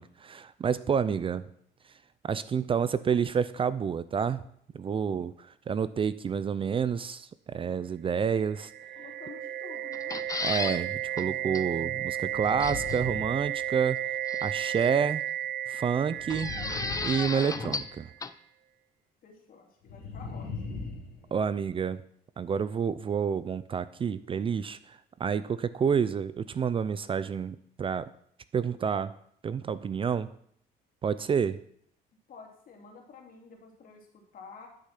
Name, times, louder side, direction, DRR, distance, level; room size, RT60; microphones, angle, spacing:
voice 1, 0.0-1.4 2.2-4.4 4.7-8.7 10.4-14.0 14.4-15.2 15.7-16.5 17.0-18.1 21.3-22.0 22.4-28.1 28.5-29.1 29.4-30.3 31.0-31.6, right 7 dB, 30° right, 15 dB, 0.5 m, -29 dB
sound 1, 8.3-18.2, right 11 dB, 80° right, 0.7 m, -34 dB
voice 2, 9.0-10.2 19.2-20.8 32.3-34.7, left 5 dB, 55° left, 2 dB, 3.0 m, -50 dB
sound 2, 9.9-10.8 11.2-11.3 11.5-11.6 12.6-13.0 14.3-14.9 16.3-17.9 18.2-18.3, left 4 dB, 20° left, 0.5 m, -34 dB
sound 3, 10.2-10.6 12.2-14.1 16.2-17.9 19.8-21.8, left 4 dB, 70° left, 3.2 m, -41 dB
11.5 x 6.5 x 5.9 m, 0.66 s
cardioid pair, 110°, 17 cm